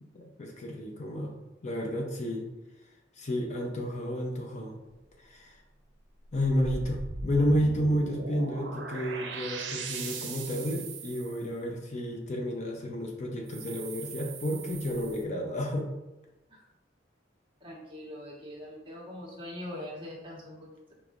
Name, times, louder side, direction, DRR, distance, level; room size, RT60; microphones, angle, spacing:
voice 1, 0.1-1.4 1.6-2.5 3.2-4.8 5.2-5.5 6.3-15.9, equal, 40° left, 1 dB, 0.6 m, -31 dB
sound 1, 6.2-11.4 13.5-15.2, right 4 dB, 75° right, 0.6 m, -39 dB
voice 2, 17.6-20.7, left 1 dB, 30° right, -3 dB, 1.2 m, -42 dB
5.1 x 3.5 x 2.4 m, 1.0 s
head